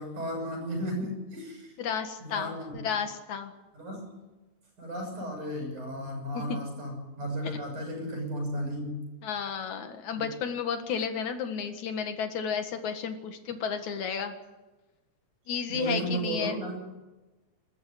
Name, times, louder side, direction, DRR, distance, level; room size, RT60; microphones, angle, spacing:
voice 1, 0.0-1.7 2.2-2.9 3.7-4.2 4.8-9.0 10.1-10.3 15.7-16.7, equal, 85° right, 2 dB, 8.3 m, -34 dB
voice 2, 1.8-3.5 6.3-6.4 9.2-14.3 15.5-16.6, left 6 dB, 75° left, 7 dB, 3.1 m, -32 dB
24.5 x 13.5 x 9.9 m, 1.1 s
omnidirectional pair, 3.4 m